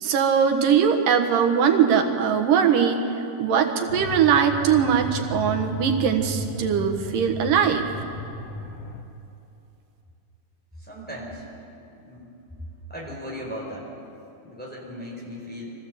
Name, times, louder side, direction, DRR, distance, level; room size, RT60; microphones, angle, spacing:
voice 1, 0.0-3.0 3.4-7.9, right 7 dB, 90° right, 5 dB, 3.0 m, -21 dB
sound 1, 3.9-9.0, equal, 50° left, 1.7 m, -34 dB
voice 2, 10.8-11.4 12.0-12.3 12.9-13.9 14.4-15.7, equal, 5° left, -3 dB, 4.2 m, -37 dB
23.5 x 15.0 x 7.8 m, 2.7 s
omnidirectional pair, 3.7 m